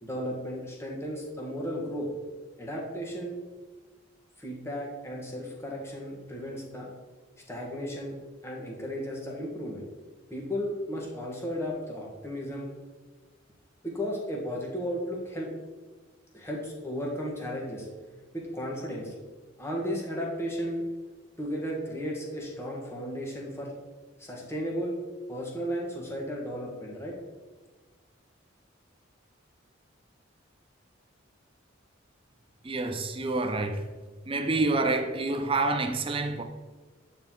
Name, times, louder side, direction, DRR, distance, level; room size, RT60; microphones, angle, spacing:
voice 1, 0.0-2.1 2.6-3.4 4.4-6.9 7.5-8.1 8.4-9.9 10.3-12.7 13.8-15.5 16.3-17.9 18.3-19.1 19.6-20.8 21.4-23.7 24.2-25.0 25.3-27.1, equal, 15° left, 1.3 m, -34 dB
voice 2, 32.6-33.8 34.3-36.4, right 2 dB, 25° right, 0.6 m, -27 dB
8.7 x 4.6 x 3.7 m
head